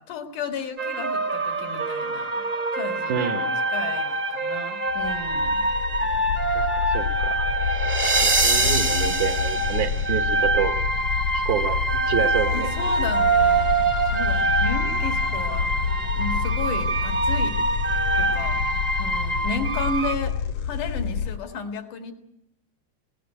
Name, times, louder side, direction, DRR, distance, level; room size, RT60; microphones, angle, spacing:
voice 1, 0.0-2.4 2.7-3.3 3.7-5.7 12.5-13.7 14.1-15.7 16.2-17.6 18.2-18.6 19.0-20.4 20.6-22.1, left 4 dB, 80° left, 5 dB, 3.5 m, -33 dB
sound 1, 0.8-20.1, right 2 dB, 35° right, 0.8 m, -25 dB
voice 2, 3.1-3.5 6.5-7.5 8.2-10.8 11.3-12.7, right 9 dB, 75° right, 4 dB, 2.6 m, -28 dB
sound 2, 4.9-21.4, left 6 dB, 65° left, 1.9 m, -28 dB
20.0 x 17.5 x 9.2 m, 0.83 s
omnidirectional pair, 3.5 m